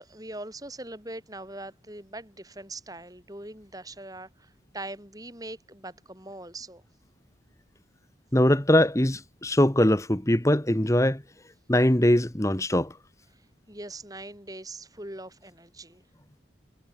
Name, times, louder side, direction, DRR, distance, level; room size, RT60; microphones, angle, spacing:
voice 1, 0.0-6.8 13.3-16.0, right 2 dB, 20° right, 7.2 m, -41 dB
voice 2, 8.3-11.2 11.7-12.9, left 1 dB, 15° left, 1.4 m, -22 dB
head